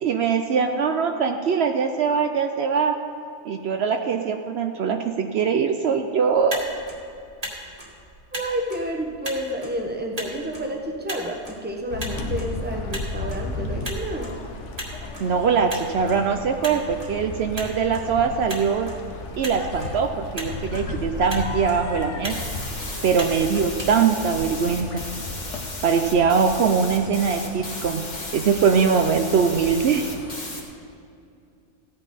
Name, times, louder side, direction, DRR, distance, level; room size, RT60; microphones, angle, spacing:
voice 1, 0.0-3.0 3.4-6.6 15.2-18.9 19.4-22.3 23.0-25.0 25.8-28.0 28.3-30.1, right 6 dB, 65° right, 5 dB, 0.8 m, -22 dB
Motor vehicle (road), 6.3-24.8, right 1 dB, 30° right, 1.9 m, -39 dB
voice 2, 8.3-14.3, right 1 dB, 10° right, 2 dB, 1.0 m, -30 dB
sound 1, 11.9-30.3, left 3 dB, 80° left, 1.3 m, -35 dB
sound 2, 22.3-30.6, left 2 dB, 40° left, 1.6 m, -36 dB
15.5 x 9.0 x 4.2 m, 2.4 s
omnidirectional pair, 1.2 m